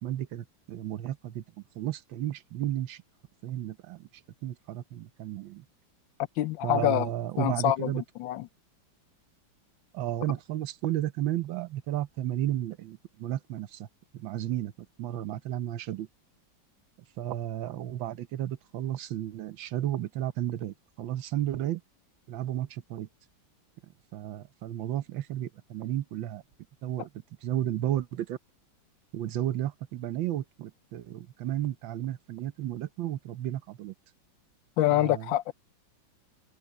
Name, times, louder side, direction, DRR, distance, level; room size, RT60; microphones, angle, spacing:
voice 1, 0.0-1.4 1.7-3.0 3.4-4.1 4.4-5.6 6.6-8.0 9.9-13.9 14.1-14.7 15.0-16.1 17.2-21.8 22.3-23.1 24.1-26.4 26.8-27.1 27.4-28.4 29.1-33.9 34.9-35.3, right 12 dB, 80° right, 1.6 m, -33 dB
voice 2, 6.4-7.1 7.4-8.5 34.8-35.5, left 14 dB, 80° left, 1.4 m, -26 dB
omnidirectional pair, 2.1 m